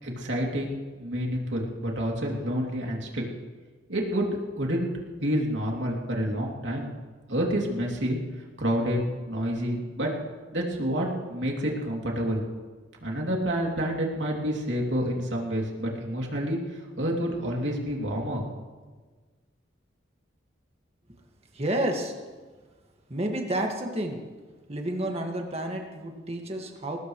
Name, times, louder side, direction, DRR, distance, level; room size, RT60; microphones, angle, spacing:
voice 1, 0.0-3.2 3.9-4.3 4.6-4.9 5.2-6.9 7.3-8.2 8.6-9.0 9.3-10.1 10.5-12.4 13.0-16.6 17.0-18.4, equal, 75° right, -1 dB, 2.9 m, -28 dB
voice 2, 21.5-22.2 23.1-24.2 24.7-27.0, right 1 dB, 35° right, 2 dB, 1.9 m, -30 dB
21.0 x 19.0 x 3.2 m, 1.4 s
head